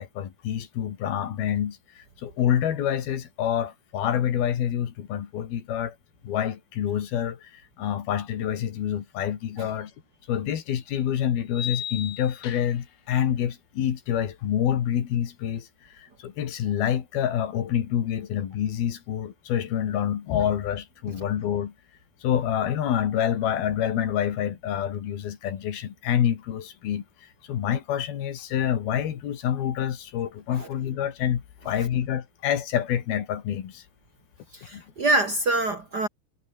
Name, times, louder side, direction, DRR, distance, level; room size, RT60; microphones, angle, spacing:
voice 1, 0.0-6.0 6.2-9.9 10.3-15.7 15.9-21.7 22.2-27.0 27.4-33.8 34.7-34.8, left 10 dB, 85° left, 4.1 m, -27 dB
sound 1, 9.8-9.9 11.5-12.9, left 10 dB, 55° left, 2.3 m, -36 dB
voice 2, 34.5-36.1, right 2 dB, 50° right, 1.1 m, -25 dB
omnidirectional pair, 4.3 m